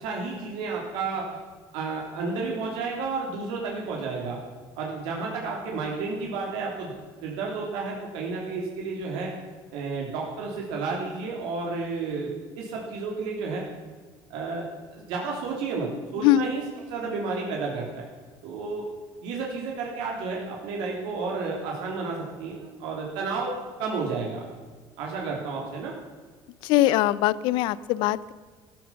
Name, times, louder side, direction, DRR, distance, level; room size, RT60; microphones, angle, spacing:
voice 1, 0.0-1.4 1.7-4.4 4.7-6.9 7.2-9.3 9.7-13.6 14.3-16.6 16.9-18.0 18.4-18.8 19.2-24.4 25.0-25.9, right 4 dB, 80° right, -1 dB, 3.1 m, -31 dB
voice 2, 26.6-28.3, left 14 dB, 70° left, 19 dB, 0.6 m, -22 dB
14.0 x 13.0 x 5.8 m, 1.4 s
cardioid pair, 155°, 8 cm